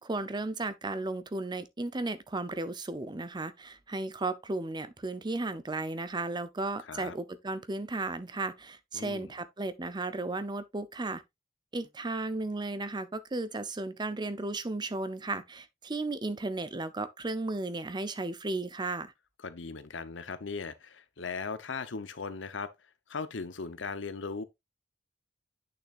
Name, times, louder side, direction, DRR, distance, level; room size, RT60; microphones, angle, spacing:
voice 1, 0.0-11.2 11.7-19.1, right 2 dB, 25° right, 0.6 m, -34 dB
voice 2, 8.9-9.3 19.4-22.7 23.1-24.4, left 4 dB, 80° left, 0.9 m, -38 dB
8.7 x 6.5 x 2.5 m
head